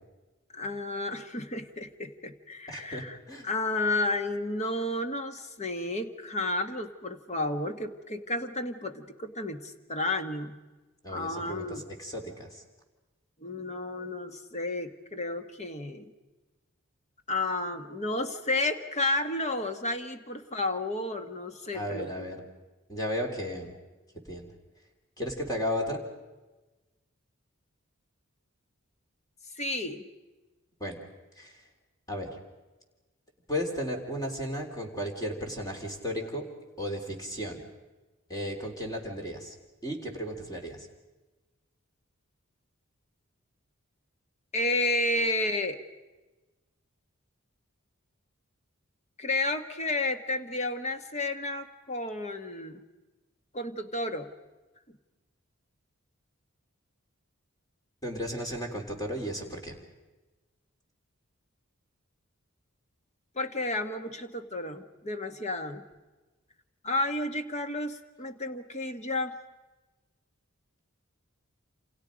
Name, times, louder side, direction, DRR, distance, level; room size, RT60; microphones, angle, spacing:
voice 1, 0.5-3.2 3.4-10.6 11.1-11.8 13.4-16.1 17.3-22.3 29.5-30.1 44.5-45.8 49.2-52.8 53.5-54.3 63.3-65.8 66.8-69.3, left 2 dB, 35° left, 7 dB, 1.5 m, -32 dB
voice 2, 2.7-3.5 11.0-12.6 21.7-22.4 22.9-23.7 24.2-24.5 25.2-26.0 30.8-31.0 31.4-31.6 32.1-32.4 33.5-36.5 36.8-37.6 38.3-39.5 39.8-40.9 58.0-59.8, equal, 20° left, 2 dB, 3.5 m, -34 dB
29.0 x 27.5 x 5.2 m, 1.2 s
head